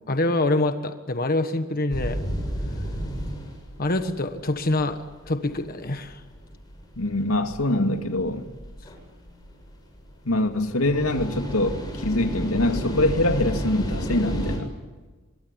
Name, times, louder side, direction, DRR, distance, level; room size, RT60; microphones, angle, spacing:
voice 1, 0.1-2.2 3.8-6.2, left 2 dB, 45° left, 1.4 m, -25 dB
sound 1, 1.9-14.6, equal, 20° left, 7.1 m, -33 dB
voice 2, 7.0-8.4 10.3-14.7, left 1 dB, 85° left, 2.4 m, -24 dB
25.0 x 23.0 x 9.9 m
head